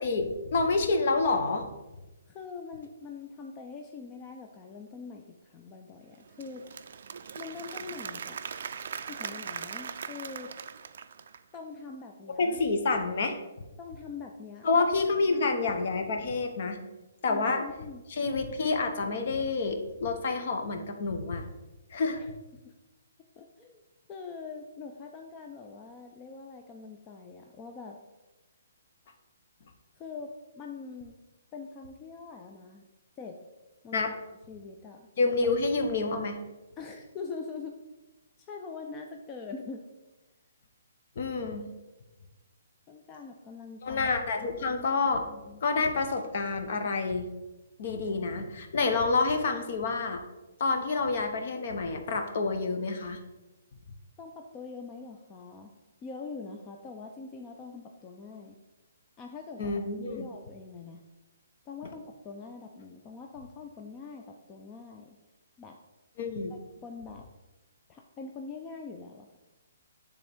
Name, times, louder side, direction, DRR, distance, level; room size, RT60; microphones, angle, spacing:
voice 1, 0.0-1.7 12.4-13.4 14.6-16.8 17.2-17.6 18.1-21.4 21.9-22.2 33.9-34.1 35.2-36.4 41.2-41.7 43.8-45.2 45.6-47.3 47.8-50.2 50.6-53.2 59.6-60.3 66.2-66.5, left 3 dB, 50° left, 5 dB, 0.8 m, -28 dB
voice 2, 2.3-6.8 7.4-8.4 9.1-10.5 11.5-12.6 13.8-14.7 15.3-15.7 17.3-18.0 22.2-22.7 23.4-23.8 24.1-28.0 30.0-31.1 31.5-32.9 33.2-33.4 33.8-34.2 34.5-35.1 36.8-37.8 38.4-39.9 42.9-44.1 44.4-44.8 45.3-45.6 54.2-55.7 56.0-58.6 59.2-61.0 61.7-65.1 65.6-65.8 66.8-67.3 67.9-69.4, left 4 dB, 20° left, 2 dB, 0.4 m, -43 dB
Applause / Crowd, 6.1-11.5, right 7 dB, 60° right, 0.3 m, -40 dB
9.0 x 3.5 x 3.5 m, 1.1 s
hypercardioid pair, 160°, 0 cm